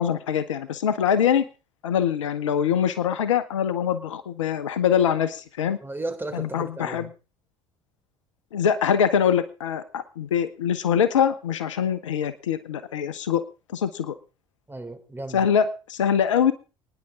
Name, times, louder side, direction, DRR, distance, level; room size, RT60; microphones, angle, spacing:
voice 1, 0.0-1.4 1.8-5.8 6.3-7.1 8.5-13.4 13.7-14.1 15.3-16.5, left 8 dB, 85° left, 15 dB, 0.9 m, -23 dB
voice 2, 5.8-7.1 14.7-15.5, right 2 dB, 15° right, 6 dB, 3.5 m, -35 dB
27.5 x 10.0 x 3.7 m, 0.34 s
hypercardioid pair, 55°, 16 cm